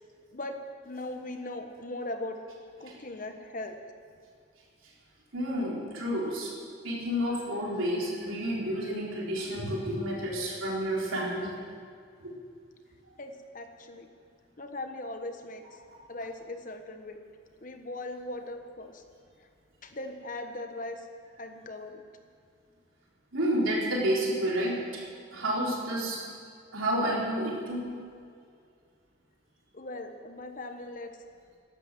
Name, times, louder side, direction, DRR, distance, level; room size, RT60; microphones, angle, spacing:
voice 1, 0.8-2.4 2.8-3.8 13.2-14.1 14.6-15.8 16.1-17.2 17.6-19.0 19.8-21.1 21.4-22.0 29.7-31.1, left 2 dB, 40° left, 6 dB, 1.1 m, -39 dB
voice 2, 5.3-6.5 6.8-11.5 12.2-12.3 23.3-25.0 25.3-26.2 26.7-27.8, equal, 80° right, -3 dB, 3.8 m, -30 dB
14.0 x 11.5 x 7.5 m, 2.2 s
head